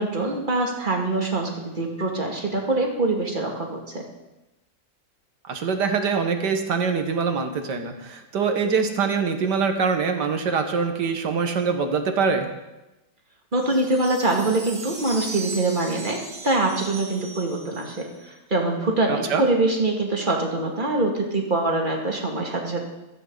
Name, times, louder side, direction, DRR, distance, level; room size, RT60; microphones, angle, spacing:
voice 1, 0.0-4.0 13.5-22.8, right 2 dB, 25° right, 0 dB, 2.3 m, -24 dB
voice 2, 5.5-12.5 19.1-19.4, right 5 dB, 65° right, 5 dB, 1.9 m, -24 dB
sound 1, 13.5-18.3, right 2 dB, 85° right, 3.8 m, -38 dB
15.5 x 14.0 x 4.0 m, 1.0 s
omnidirectional pair, 2.0 m